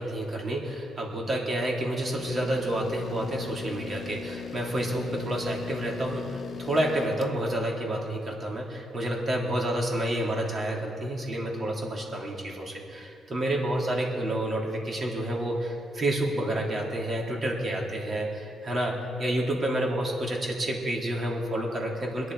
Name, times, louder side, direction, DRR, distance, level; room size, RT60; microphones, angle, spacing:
voice 1, 0.0-22.3, right 1 dB, 40° right, -1 dB, 3.2 m, -29 dB
sound 1, 2.2-7.4, left 7 dB, 50° left, 0.5 m, -39 dB
22.5 x 10.0 x 4.8 m, 2.5 s
cardioid pair, 90°, 0 cm